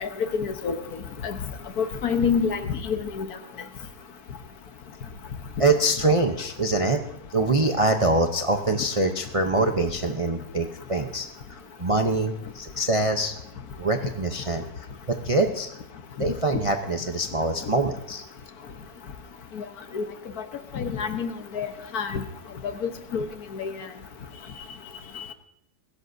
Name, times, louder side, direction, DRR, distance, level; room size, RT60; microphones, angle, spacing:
voice 1, 0.0-0.8 1.2-1.4 1.8-2.6 3.2-3.3 19.9-20.0 20.7-21.7 21.9-22.2 22.8-23.3 23.5-23.7, left 6 dB, 60° left, 7 dB, 1.5 m, -27 dB
voice 2, 5.6-7.0 7.3-13.3 13.8-14.6 15.1-15.7 16.2-18.2, right 2 dB, 35° right, 4 dB, 0.5 m, -24 dB
21.0 x 16.0 x 2.7 m, 0.77 s
omnidirectional pair, 1.8 m